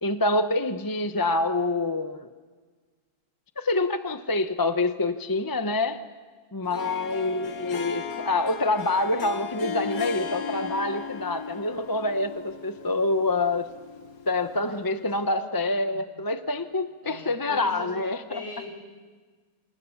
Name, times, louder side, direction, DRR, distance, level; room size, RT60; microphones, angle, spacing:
voice 1, 0.0-2.3 3.6-6.0 6.5-13.7 14.3-18.4, left 2 dB, 20° left, 9 dB, 0.7 m, -26 dB
Harp, 6.6-14.9, left 6 dB, 70° left, 1.7 m, -36 dB
voice 2, 7.1-7.7 14.5-15.5 15.9-16.1 17.0-18.7, left 2 dB, 45° left, 1 dB, 7.0 m, -43 dB
28.0 x 27.5 x 7.2 m, 1.5 s
omnidirectional pair, 1.6 m